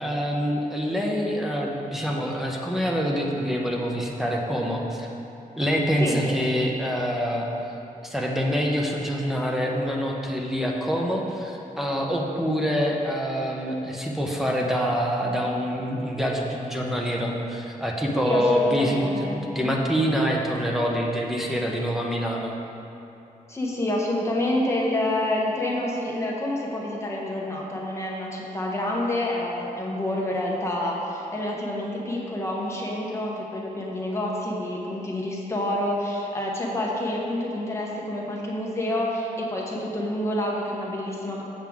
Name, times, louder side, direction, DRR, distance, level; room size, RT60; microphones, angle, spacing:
voice 1, 0.0-5.1 5.6-7.5 8.0-22.5, equal, ahead, -1 dB, 0.7 m, -26 dB
voice 2, 18.2-19.4 23.5-41.4, left 1 dB, 20° left, -3 dB, 1.0 m, -28 dB
7.5 x 7.4 x 3.6 m, 3.0 s
wide cardioid pair, 170°, 15 cm